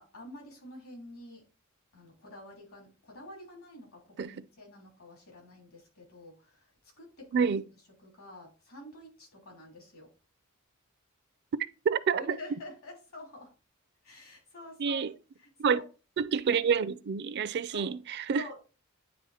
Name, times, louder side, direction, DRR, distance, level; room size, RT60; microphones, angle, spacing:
voice 1, 0.0-1.4 1.9-7.7 8.0-10.1 12.2-13.5 14.0-15.8 17.7-18.0 18.3-18.6, left 1 dB, 75° left, 3.3 m, -48 dB
voice 2, 7.3-7.6 11.9-12.4 14.8-15.1 15.6-15.8 16.2-18.4, right 6 dB, 55° right, 0.4 m, -28 dB
9.6 x 3.3 x 4.2 m
head